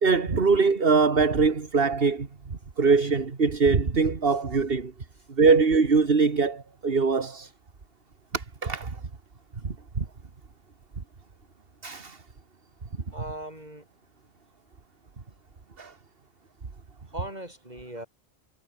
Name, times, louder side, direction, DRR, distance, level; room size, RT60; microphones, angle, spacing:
voice 1, 0.0-4.9 5.4-7.5 8.3-9.0 9.6-10.0 11.8-12.2 15.8-15.9, right 4 dB, 65° right, 2.1 m, -23 dB
voice 2, 13.1-13.9 17.1-18.1, right 1 dB, 40° right, 7.8 m, -39 dB
omnidirectional pair, 1.1 m